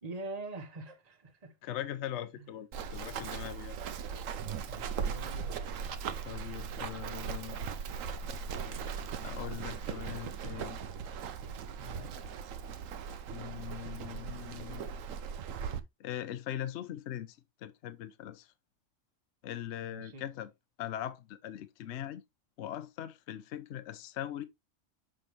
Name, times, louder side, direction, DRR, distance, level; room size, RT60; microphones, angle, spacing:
voice 1, 0.0-1.6 2.4-2.5 4.7-5.8 11.8-12.3 19.9-20.2, right 2 dB, 30° right, 1.2 m, -44 dB
voice 2, 1.6-3.8 6.2-7.6 9.2-10.8 13.3-14.9 16.0-18.5 19.4-20.5 20.8-22.2 22.6-24.4, left 11 dB, 65° left, 0.9 m, -41 dB
Run, 2.7-15.8, right 6 dB, 80° right, 1.1 m, -39 dB
6.4 x 5.7 x 3.1 m
omnidirectional pair, 1.3 m